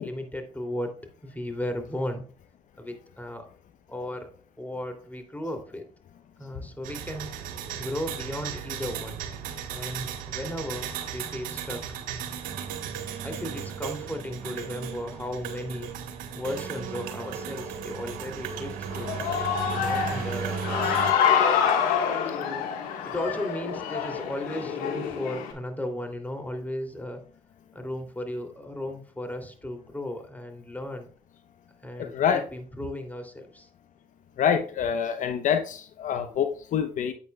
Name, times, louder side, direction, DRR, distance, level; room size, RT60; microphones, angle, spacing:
voice 1, 0.0-2.2 2.8-3.5 3.9-4.3 4.6-5.8 6.4-7.3 7.8-9.2 9.7-11.8 13.2-15.9 16.3-19.2 19.7-21.0 22.2-22.7 23.0-27.2 27.7-31.1 31.8-32.1 32.5-33.7, left 1 dB, 10° left, 5 dB, 3.0 m, -35 dB
sound 1, 6.8-21.1, right 8 dB, 85° right, 1.5 m, -35 dB
Human voice / Cheering, 18.9-25.5, left 8 dB, 85° left, 1.7 m, -26 dB
voice 2, 32.0-32.4 34.4-37.1, left 8 dB, 65° left, 7 dB, 1.0 m, -26 dB
9.6 x 8.3 x 2.4 m, 0.43 s
supercardioid pair, 55°, 14 cm